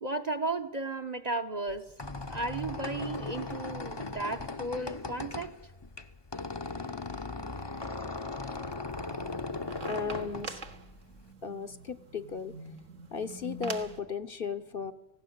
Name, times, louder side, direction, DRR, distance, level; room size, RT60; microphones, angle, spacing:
voice 1, 0.0-5.6, right 2 dB, 35° right, 7 dB, 1.0 m, -35 dB
Squeak, 1.7-11.3, left 3 dB, 25° left, 0.8 m, -38 dB
sound 1, 8.9-14.0, right 4 dB, 80° right, 1.8 m, -45 dB
voice 2, 9.9-10.6 11.4-12.5 13.1-14.9, left 5 dB, 50° left, 9 dB, 1.2 m, -35 dB
18.5 x 16.5 x 9.4 m, 0.99 s
omnidirectional pair, 1.3 m